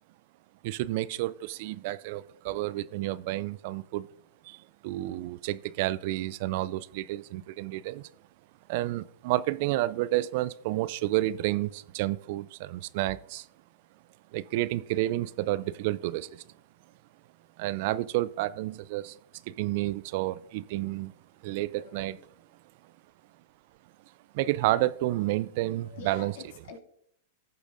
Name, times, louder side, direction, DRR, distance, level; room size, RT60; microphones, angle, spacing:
voice 1, 0.6-4.1 4.4-8.1 8.7-13.5 14.3-16.4 17.6-19.2 19.5-21.1 21.4-22.2 24.3-26.3, right 16 dB, 55° right, 0.3 m, -30 dB
voice 2, 21.8-22.3 25.9-26.8, left 5 dB, 65° left, 2.2 m, -46 dB
16.5 x 6.9 x 2.6 m
hypercardioid pair, 115°, 0 cm